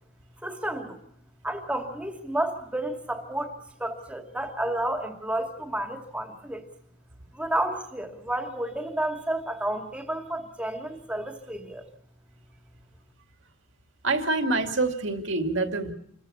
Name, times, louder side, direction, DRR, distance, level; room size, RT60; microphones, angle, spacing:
voice 1, 0.4-1.0 1.4-3.5 3.8-6.6 7.3-11.9, right 1 dB, 5° right, 4 dB, 2.4 m, -31 dB
voice 2, 14.0-15.9, right 2 dB, 60° right, 5 dB, 2.4 m, -26 dB
27.5 x 15.0 x 8.5 m, 0.71 s
head